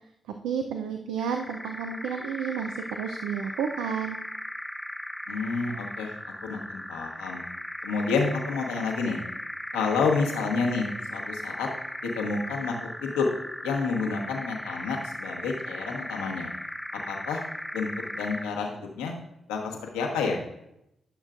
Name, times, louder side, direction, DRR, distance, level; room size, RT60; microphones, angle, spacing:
voice 1, 0.4-4.2, right 7 dB, 85° right, 5 dB, 0.5 m, -31 dB
sound 1, 1.2-18.6, left 1 dB, 5° left, 0.6 m, -37 dB
voice 2, 5.3-6.1 6.4-7.4 7.8-9.2 9.7-11.7 12.0-13.3 13.6-16.5 17.1-17.4 17.7-19.1 19.5-20.4, left 4 dB, 90° left, 1 dB, 1.1 m, -29 dB
13.5 x 6.5 x 2.5 m, 0.82 s
hypercardioid pair, 40°, 0 cm